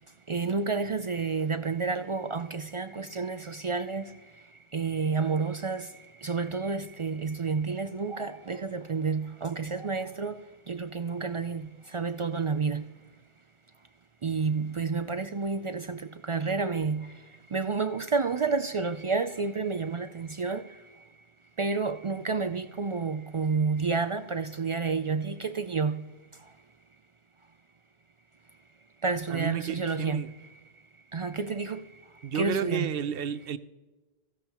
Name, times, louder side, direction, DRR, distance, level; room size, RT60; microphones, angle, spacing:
voice 1, 0.3-12.9 14.2-21.1 21.6-26.5 29.0-30.6 31.1-33.0, right 4 dB, 50° right, 0.3 m, -30 dB
voice 2, 29.3-30.3 32.2-33.6, right 8 dB, 65° right, 0.8 m, -31 dB
17.0 x 15.5 x 3.0 m
omnidirectional pair, 1.1 m